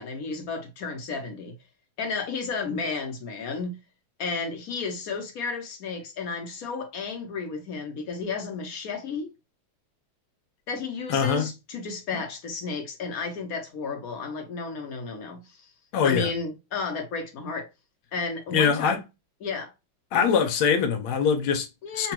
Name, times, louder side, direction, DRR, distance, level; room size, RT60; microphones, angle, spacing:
voice 1, 0.0-1.5 2.0-3.8 4.2-9.3 10.7-15.7 16.0-17.7 18.1-19.0 19.4-19.7 21.8-22.1, left 4 dB, 65° left, 0.9 m, -32 dB
voice 2, 11.1-11.5 15.9-16.3 18.5-19.0 20.1-21.7 21.9-22.1, left 6 dB, 85° left, 1.4 m, -23 dB
3.8 x 2.3 x 2.8 m
omnidirectional pair, 2.3 m